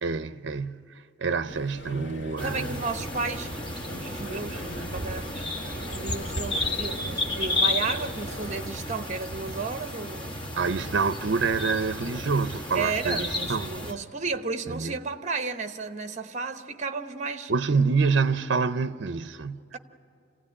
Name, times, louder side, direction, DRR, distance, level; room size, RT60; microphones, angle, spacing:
voice 1, 0.0-2.8 10.6-13.7 14.7-15.0 17.5-19.6, right 4 dB, 60° right, 0.6 m, -27 dB
sound 1, 1.5-8.7, left 1 dB, 85° left, 1.8 m, -42 dB
sound 2, 2.4-13.9, left 2 dB, 25° left, 1.5 m, -32 dB
voice 2, 2.4-5.5 5.9-10.4 12.7-17.5, right 4 dB, 35° right, 1.0 m, -33 dB
27.0 x 16.5 x 9.7 m
head